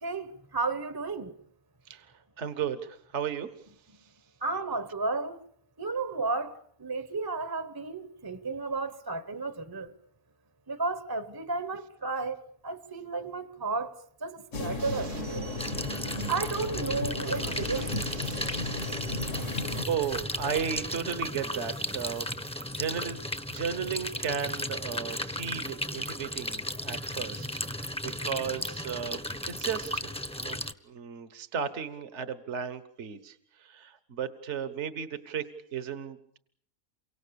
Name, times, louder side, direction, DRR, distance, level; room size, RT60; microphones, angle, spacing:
voice 1, 0.0-1.3 4.4-5.4 5.8-9.9 10.7-13.9 14.2-15.5 16.3-18.0, right 3 dB, 15° right, 1.1 m, -33 dB
voice 2, 1.9-3.5 4.0-4.1 19.1-22.3 22.7-23.2 23.5-27.6 28.2-30.6 30.8-36.4, right 7 dB, 55° right, 1.6 m, -35 dB
sound 1, 14.5-19.9, left 2 dB, 60° left, 2.0 m, -35 dB
sound 2, 14.8-22.2, right 4 dB, 70° right, 2.1 m, -47 dB
sound 3, 15.6-30.7, equal, 5° left, 1.0 m, -35 dB
29.0 x 25.0 x 7.0 m
omnidirectional pair, 1.5 m